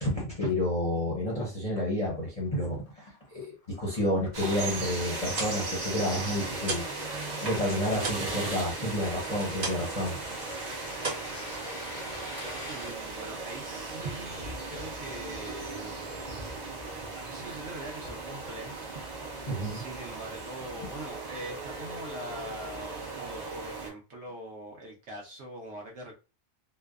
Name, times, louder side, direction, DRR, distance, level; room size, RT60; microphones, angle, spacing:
voice 1, 0.0-3.1 3.3-6.8 7.4-10.2 19.5-19.8, left 1 dB, 35° left, -4 dB, 0.6 m, -30 dB
sound 1, 2.2-12.9, left 2 dB, 85° left, 0.3 m, -47 dB
sound 2, 4.3-23.9, right 3 dB, 45° right, 0.5 m, -37 dB
sound 3, 5.3-7.0 7.3-10.0 10.3-10.6 11.0-12.1, right 3 dB, 85° right, 1.4 m, -37 dB
voice 2, 12.7-16.0 17.1-19.2 19.6-26.1, right 1 dB, 60° right, 0 dB, 0.9 m, -43 dB
2.6 x 2.1 x 2.3 m, 0.31 s
omnidirectional pair, 1.4 m